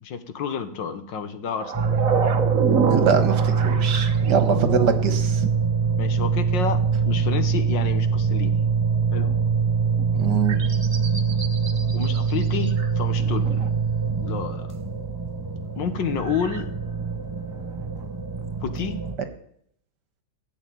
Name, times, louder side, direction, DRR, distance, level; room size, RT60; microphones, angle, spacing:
voice 1, 0.0-2.1 6.0-8.6 9.1-9.3 11.9-13.5 14.2-14.7 15.8-16.7 18.6-19.0, left 6 dB, 90° left, 9 dB, 2.0 m, -29 dB
sound 1, 1.6-5.7 9.8-10.1 10.5-12.9 13.2-13.7 16.2-18.1 18.4-18.5, right 5 dB, 50° right, 1.5 m, -28 dB
sound 2, 1.7-19.2, right 6 dB, 15° right, 0.9 m, -24 dB
voice 2, 2.9-5.5 10.1-10.6, right 6 dB, 70° right, 8 dB, 2.0 m, -24 dB
15.0 x 7.2 x 9.4 m, 0.68 s
omnidirectional pair, 1.9 m